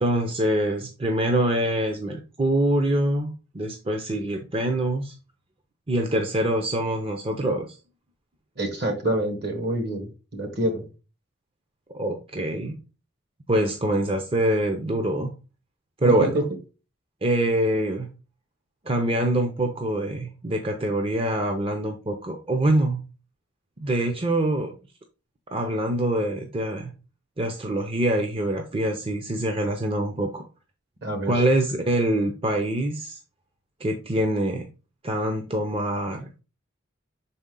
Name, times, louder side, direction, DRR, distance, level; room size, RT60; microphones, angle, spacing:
voice 1, 0.0-5.1 5.9-7.8 11.9-12.8 13.5-15.3 16.0-16.3 17.2-18.1 18.8-23.0 23.8-24.7 25.5-26.9 27.4-30.5 31.3-33.2 33.8-34.7 35.0-36.3, right 1 dB, 30° right, 4 dB, 0.6 m, -24 dB
voice 2, 8.6-10.9 16.0-16.4 31.0-31.3, right 1 dB, 55° right, 5 dB, 1.5 m, -27 dB
5.9 x 4.2 x 3.7 m, 0.32 s
head